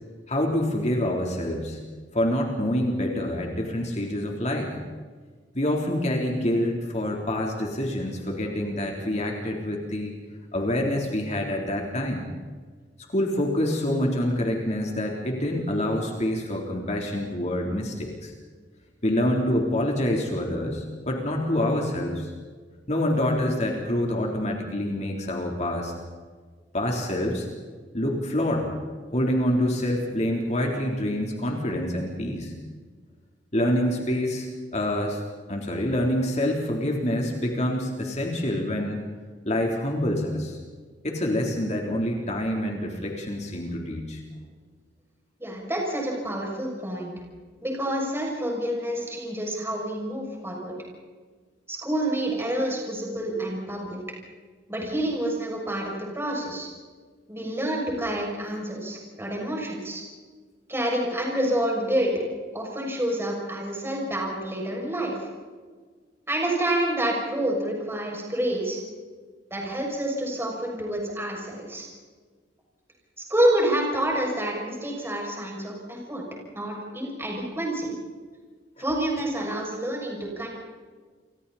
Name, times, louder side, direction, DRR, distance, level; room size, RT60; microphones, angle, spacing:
voice 1, 0.3-1.8 2.1-4.7 5.5-10.2 10.5-12.3 13.1-18.3 19.0-22.3 22.9-25.9 26.7-27.5 27.9-28.7 29.1-32.5 33.5-35.2 35.5-39.1 39.5-40.6 41.0-44.2, left 1 dB, 40° left, 0 dB, 3.6 m, -26 dB
voice 2, 45.4-47.1 47.6-50.7 51.7-54.0 54.7-56.7 57.3-60.0 60.7-62.1 62.5-65.1 66.3-68.8 69.5-71.9 73.3-76.2 76.5-77.9 78.8-80.5, right 1 dB, 15° right, -1 dB, 6.9 m, -28 dB
29.0 x 25.5 x 4.3 m, 1.5 s
head